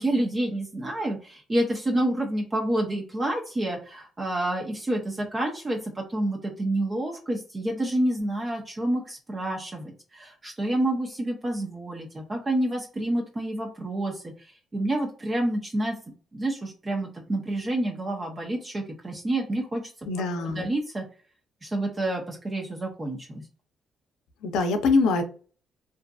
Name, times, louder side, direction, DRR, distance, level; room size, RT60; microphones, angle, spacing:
voice 1, 0.0-16.0 16.3-20.1 20.4-21.1 21.6-23.4, right 1 dB, 25° right, 0 dB, 0.6 m, -28 dB
voice 2, 20.1-20.7 24.4-25.2, left 3 dB, 90° left, 7 dB, 0.5 m, -23 dB
2.5 x 2.5 x 2.3 m, 0.39 s
cardioid pair, 90°, 0 cm